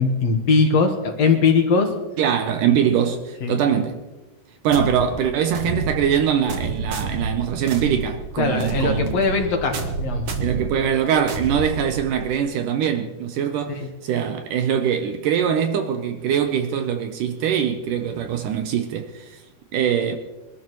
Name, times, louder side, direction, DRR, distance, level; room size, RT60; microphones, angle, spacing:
voice 1, 0.0-1.9 2.7-2.8 3.4-3.6 8.4-10.3 13.7-13.8, left 4 dB, 60° left, 1.8 m, -20 dB
voice 2, 2.2-4.0 4.6-9.2 10.4-19.4 19.7-20.2, right 8 dB, 80° right, 1.9 m, -22 dB
sound 1, 4.7-12.3, right 4 dB, 55° right, 1.8 m, -29 dB
24.0 x 12.5 x 3.1 m
omnidirectional pair, 4.6 m